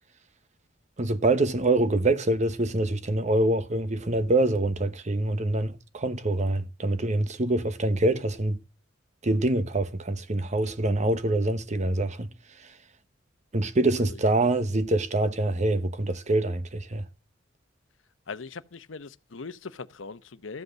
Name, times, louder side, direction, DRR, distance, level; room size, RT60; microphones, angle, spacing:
voice 1, 1.0-8.6 9.2-12.3 13.5-17.1, right 2 dB, 40° right, 0.9 m, -25 dB
voice 2, 18.3-20.6, left 4 dB, 90° left, 0.8 m, -40 dB
14.0 x 8.0 x 6.4 m
head